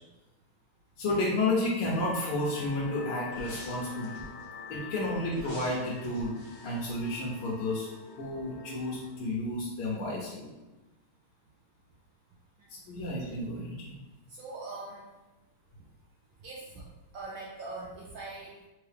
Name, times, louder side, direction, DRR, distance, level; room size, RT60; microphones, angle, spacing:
voice 1, 1.0-4.2 4.7-6.4 6.6-7.9 8.2-10.5 12.9-14.0, left 2 dB, 80° left, -5 dB, 1.7 m, -31 dB
sound 1, 1.8-9.2, left 4 dB, 65° left, 1.5 m, -47 dB
sound 2, 3.3-4.4 5.3-7.8 8.1-8.2, equal, 15° left, 1.0 m, -48 dB
voice 2, 14.3-15.0 16.4-16.6 17.1-18.6, right 3 dB, 75° right, -4 dB, 1.2 m, -41 dB
3.6 x 3.6 x 3.4 m, 1.1 s
omnidirectional pair, 2.3 m